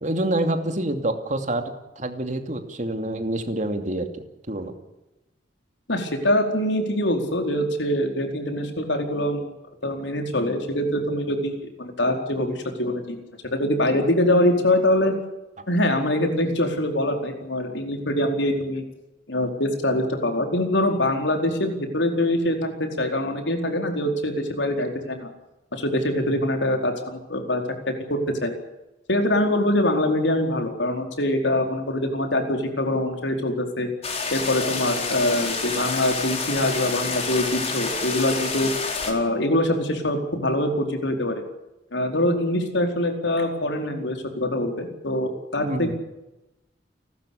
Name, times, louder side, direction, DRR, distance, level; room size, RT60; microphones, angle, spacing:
voice 1, 0.0-4.1 4.5-4.7 15.6-15.7 26.2-26.4 45.6-45.9, right 1 dB, 40° right, 7 dB, 2.7 m, -27 dB
voice 2, 5.9-9.5 9.8-13.2 13.4-15.1 15.7-18.8 19.3-25.3 25.7-27.6 28.1-28.5 29.1-33.9 34.3-38.7 39.0-41.4 41.9-45.9, left 1 dB, 80° left, 4 dB, 4.6 m, -24 dB
sound 1, 34.0-39.1, left 4 dB, 35° left, 4.5 m, -28 dB
29.5 x 13.0 x 8.5 m, 0.97 s
head